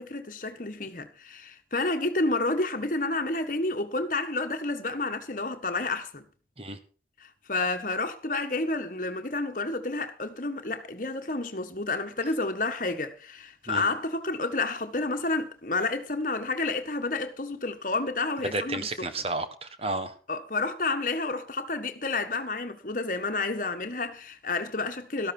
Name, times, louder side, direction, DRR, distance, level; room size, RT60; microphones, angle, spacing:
voice 1, 0.0-6.2 7.2-18.9 20.3-25.3, left 3 dB, 45° left, 1.5 m, -30 dB
voice 2, 18.5-20.1, right 2 dB, 35° right, 1.4 m, -32 dB
13.0 x 12.5 x 4.5 m
head